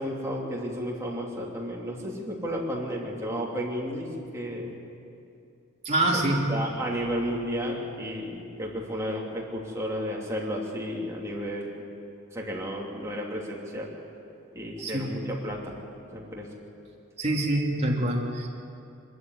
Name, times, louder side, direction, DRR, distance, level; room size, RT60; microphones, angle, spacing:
voice 1, 0.0-4.1 4.3-4.7 6.1-6.2 6.5-11.8 12.3-13.9 14.5-15.8 16.1-16.4, equal, 15° right, -3 dB, 3.1 m, -32 dB
voice 2, 5.8-6.5 14.8-15.2 17.2-18.5, right 1 dB, 30° right, -2 dB, 2.7 m, -26 dB
23.0 x 13.5 x 9.6 m, 2.6 s
head